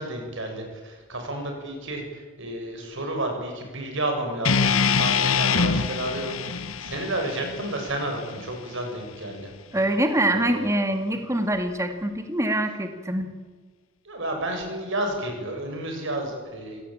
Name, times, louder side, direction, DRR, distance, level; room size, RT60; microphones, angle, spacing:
voice 1, 0.0-9.5 10.3-10.6 11.1-11.2 14.0-16.8, right 1 dB, 65° right, 3 dB, 7.4 m, -31 dB
sound 1, 4.4-8.6, left 5 dB, 80° left, 1.3 m, -25 dB
voice 2, 9.7-13.3, right 1 dB, 15° right, 6 dB, 2.1 m, -24 dB
26.0 x 17.5 x 8.8 m, 1.4 s
head